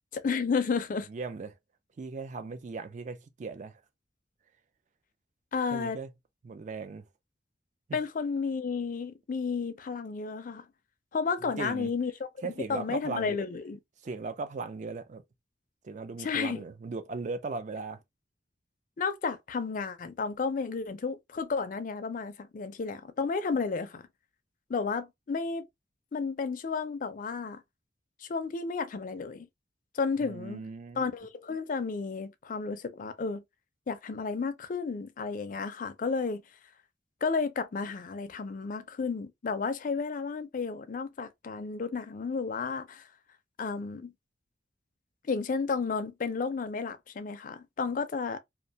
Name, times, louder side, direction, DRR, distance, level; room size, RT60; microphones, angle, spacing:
voice 1, 0.1-1.1 5.5-6.0 7.9-10.7 11.1-12.3 12.7-13.8 16.2-16.6 19.0-24.0 24.7-25.7 26.1-27.6 28.2-29.5 29.9-30.6 31.0-33.4 33.9-36.4 37.2-43.1 43.6-44.1 45.3-48.4, left 5 dB, 45° left, 0.4 m, -32 dB
voice 2, 1.1-1.5 2.0-3.8 5.7-6.1 6.4-7.0 11.6-11.9 12.4-13.3 14.0-15.2 15.8-18.0 30.2-31.1, right 4 dB, 40° right, 0.4 m, -38 dB
2.4 x 2.2 x 2.6 m
head